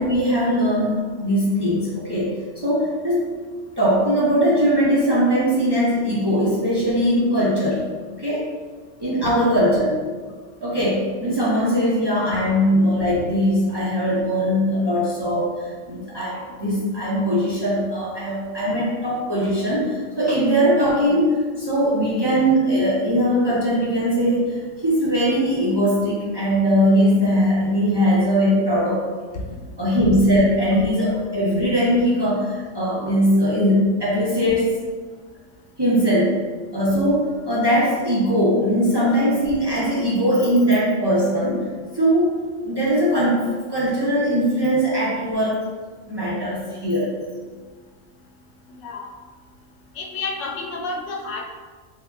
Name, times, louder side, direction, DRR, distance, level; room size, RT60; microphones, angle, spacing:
voice 1, 0.0-2.3 2.6-3.3 3.8-7.8 8.2-8.5 9.0-10.0 10.6-29.0 29.8-34.7 35.8-36.4 36.7-41.6 41.9-42.4 42.6-45.7 46.1-47.1, equal, 30° right, -8 dB, 0.4 m, -20 dB
voice 2, 50.0-51.4, left 3 dB, 85° left, 1 dB, 0.9 m, -30 dB
3.4 x 2.1 x 3.4 m, 1.5 s
omnidirectional pair, 1.3 m